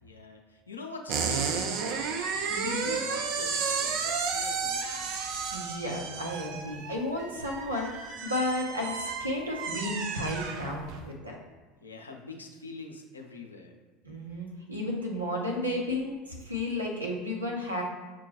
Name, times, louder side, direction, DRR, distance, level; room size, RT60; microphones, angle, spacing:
voice 1, 0.0-1.7 2.6-5.1 11.8-13.7, left 3 dB, 80° left, 2 dB, 0.5 m, -43 dB
sound 1, 1.1-11.1, right 5 dB, 55° right, 0.5 m, -32 dB
voice 2, 2.5-2.9 5.5-11.4 14.0-17.8, left 1 dB, 85° right, -1 dB, 0.7 m, -33 dB
5.9 x 2.2 x 3.1 m, 1.3 s
figure-of-eight pair, 70°, 0 cm